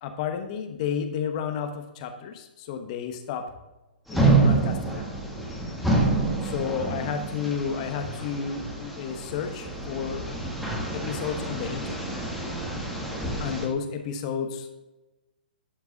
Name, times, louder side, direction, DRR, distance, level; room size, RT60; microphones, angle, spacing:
voice 1, 0.0-3.5 4.1-5.0 6.4-10.2 10.9-12.2 13.4-14.8, left 7 dB, 40° left, 6 dB, 1.0 m, -32 dB
sound 1, 4.1-13.7, right 3 dB, ahead, 1.5 m, -27 dB
11.5 x 4.6 x 4.0 m, 1.0 s
hypercardioid pair, 130°, 5 cm